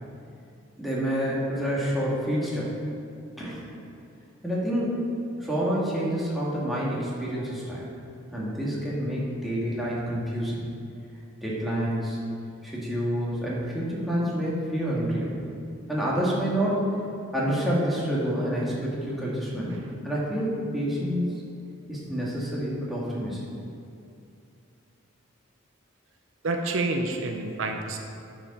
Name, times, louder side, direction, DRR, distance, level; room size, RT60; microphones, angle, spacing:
voice 1, 0.8-2.7 3.4-3.7 4.4-5.1 5.4-7.9 8.3-10.6 11.4-12.2 12.6-15.4 15.9-17.0 17.3-21.4 21.9-23.4, equal, ahead, -7 dB, 1.7 m, -28 dB
voice 2, 26.4-28.0, right 2 dB, 70° right, 4 dB, 0.6 m, -28 dB
8.9 x 4.9 x 5.4 m, 2.6 s
head